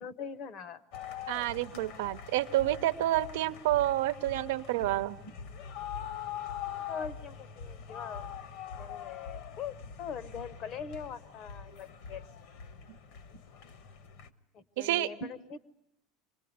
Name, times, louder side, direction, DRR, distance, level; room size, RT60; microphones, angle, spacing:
voice 1, 0.0-0.8 1.7-1.8 5.2-5.4 6.7-8.3 8.8-12.2 13.3-13.4 14.5-15.6, left 6 dB, 35° left, 15 dB, 0.9 m, -42 dB
sound 1, 0.9-14.3, left 8 dB, 50° left, 1.2 m, -43 dB
voice 2, 1.3-5.2 14.8-15.1, right 15 dB, 85° right, 10 dB, 0.9 m, -29 dB
25.5 x 20.0 x 9.5 m, 0.80 s
cardioid pair, 180°, 0 cm